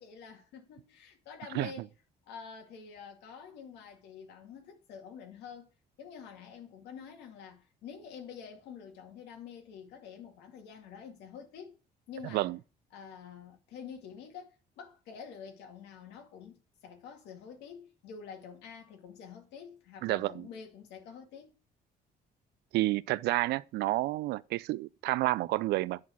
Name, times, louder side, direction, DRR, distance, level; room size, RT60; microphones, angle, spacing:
voice 1, 0.0-1.9 2.3-5.7 6.0-11.8 12.1-12.5 12.9-21.6, left 7 dB, 85° left, 2.3 m, -47 dB
voice 2, 20.0-20.5 22.7-26.0, right 18 dB, 75° right, 0.4 m, -30 dB
9.4 x 4.1 x 6.1 m
cardioid pair, 110°, 17 cm